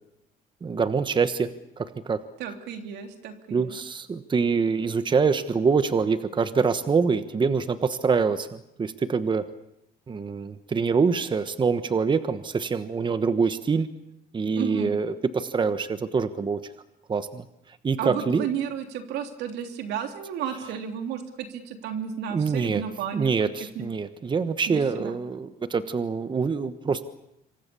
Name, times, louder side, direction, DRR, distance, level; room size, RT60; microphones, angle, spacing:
voice 1, 0.6-1.5 1.8-2.2 3.5-9.5 10.1-13.9 14.3-16.7 17.1-17.4 17.8-18.5 22.3-22.8 23.1-27.0, right 5 dB, 30° right, 11 dB, 1.3 m, -25 dB
voice 2, 2.4-3.8 14.5-15.0 18.0-23.9 24.7-25.2, right 8 dB, 80° right, 6 dB, 3.2 m, -33 dB
27.0 x 24.0 x 7.0 m, 0.80 s
cardioid pair, 110°, 17 cm